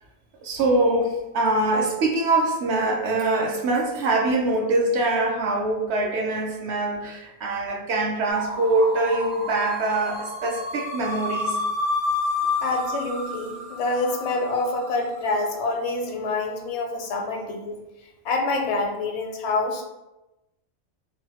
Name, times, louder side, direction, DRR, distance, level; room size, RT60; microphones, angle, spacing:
voice 1, 0.4-11.6, right 2 dB, 70° right, 0 dB, 0.8 m, -23 dB
sound 1, 8.3-15.3, left 2 dB, 90° right, 1.2 m, -30 dB
voice 2, 12.6-17.7 18.2-19.8, left 3 dB, 75° left, 3 dB, 0.8 m, -26 dB
3.1 x 2.3 x 2.7 m, 0.97 s
omnidirectional pair, 1.2 m